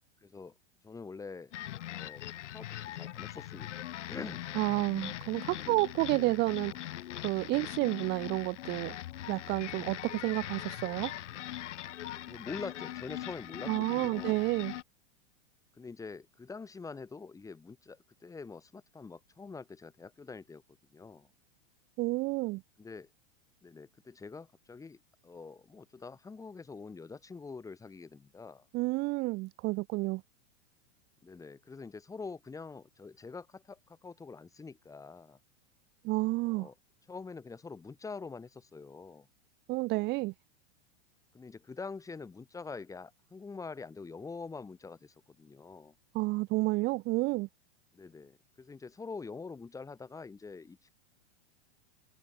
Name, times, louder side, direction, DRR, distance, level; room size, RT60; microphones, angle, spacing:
voice 1, 0.2-0.5 0.8-1.5 1.9-2.2 2.5-2.7 2.9-3.8 4.1-4.4 5.5-5.8 6.1-6.3 12.3-14.5 15.8-20.6 20.9-21.3 22.8-23.1 23.6-28.6 31.2-35.4 36.4-36.7 37.1-39.3 41.3-45.9 47.9-50.9, left 4 dB, 10° left, 4.6 m, -45 dB
sound 1, 1.5-14.8, left 13 dB, 90° left, 1.4 m, -41 dB
voice 2, 4.5-6.7 7.2-9.0 9.3-11.1 13.7-14.7 22.0-22.6 28.7-30.2 36.0-36.7 39.7-40.3 46.1-47.5, right 22 dB, 30° right, 1.0 m, -30 dB
supercardioid pair, 155°, 35 cm